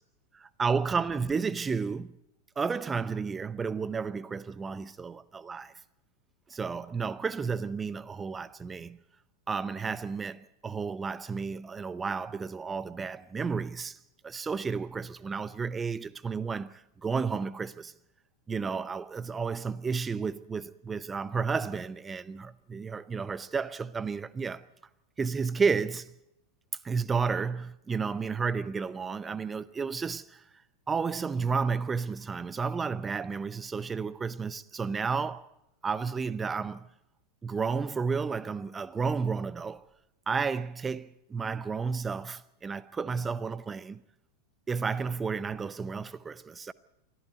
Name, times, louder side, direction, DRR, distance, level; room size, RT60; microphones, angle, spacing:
voice 1, 0.3-2.1 2.6-5.7 6.5-9.0 9.5-14.0 14.2-17.9 18.5-24.7 25.2-26.1 26.8-30.4 30.9-35.5 35.8-36.9 37.4-39.8 40.3-44.0 44.7-46.7, right 5 dB, 15° right, 0.7 m, -32 dB
25.0 x 14.5 x 8.3 m
figure-of-eight pair, 90°, 0 cm